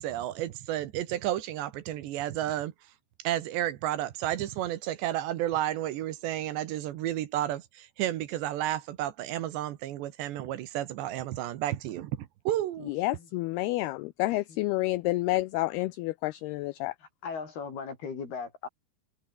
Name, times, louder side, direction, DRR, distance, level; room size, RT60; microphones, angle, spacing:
voice 1, 0.0-2.7 3.3-12.9, right 13 dB, 75° right, 3.5 m, -32 dB
voice 2, 12.9-16.9, left 19 dB, 80° left, 2.3 m, -29 dB
voice 3, 17.2-18.7, left 5 dB, 55° left, 7.1 m, -37 dB
omnidirectional pair, 5.3 m